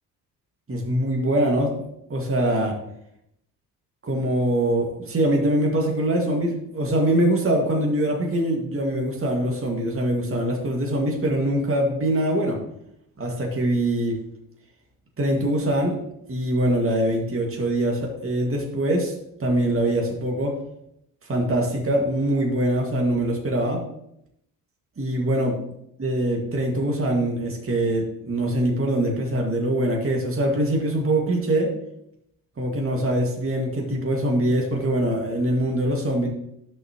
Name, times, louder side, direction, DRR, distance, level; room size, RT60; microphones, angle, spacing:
voice 1, 0.7-1.7 2.1-2.8 4.0-12.6 13.2-14.2 15.2-16.0 16.3-19.1 19.4-20.5 21.2-23.8 25.0-25.6 26.0-31.7 32.6-36.3, right 1 dB, 25° right, 0 dB, 2.1 m, -23 dB
11.5 x 6.0 x 3.1 m, 0.77 s
hypercardioid pair, 50°, 48 cm